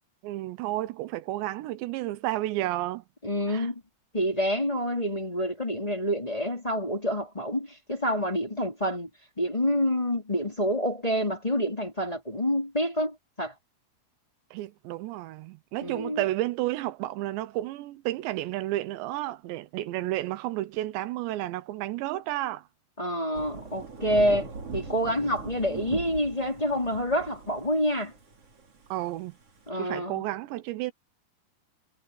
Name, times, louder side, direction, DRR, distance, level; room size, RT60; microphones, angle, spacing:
voice 1, 0.2-3.0 3.5-3.7 14.5-22.6 28.9-29.3 29.7-30.9, right 16 dB, 85° right, 3.1 m, -31 dB
voice 2, 3.2-3.8 4.1-9.1 9.4-13.5 15.8-16.2 23.0-24.5 24.7-28.1 29.7-30.2, equal, 10° left, 4.1 m, -27 dB
Thunder / Rain, 23.3-29.7, right 4 dB, 35° right, 4.2 m, -40 dB
omnidirectional pair, 5.0 m